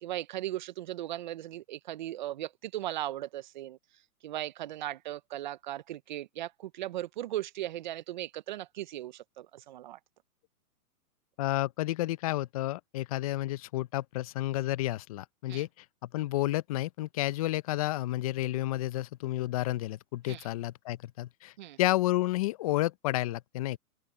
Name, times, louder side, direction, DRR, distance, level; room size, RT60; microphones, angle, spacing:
voice 1, 0.0-3.8 4.2-10.0 15.5-15.6 20.3-20.5 21.6-21.8, right 14 dB, 35° right, 0.4 m, -37 dB
voice 2, 11.4-15.7 16.0-21.5 21.8-23.8, left 16 dB, 25° left, 0.5 m, -31 dB
hypercardioid pair, 140°, 45 cm